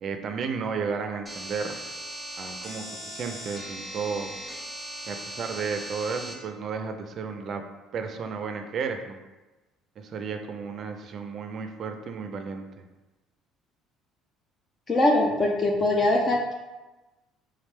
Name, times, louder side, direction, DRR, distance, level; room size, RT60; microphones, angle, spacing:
voice 1, 0.0-1.8 2.4-4.3 5.0-7.6 7.9-9.2 10.0-12.9, right 5 dB, 45° right, 6 dB, 0.4 m, -33 dB
sound 1, 1.3-6.3, right 1 dB, 5° left, 0.9 m, -38 dB
voice 2, 14.9-16.5, left 1 dB, 30° left, 0 dB, 0.4 m, -22 dB
3.6 x 3.3 x 3.2 m, 1.1 s
cardioid pair, 120°, 0 cm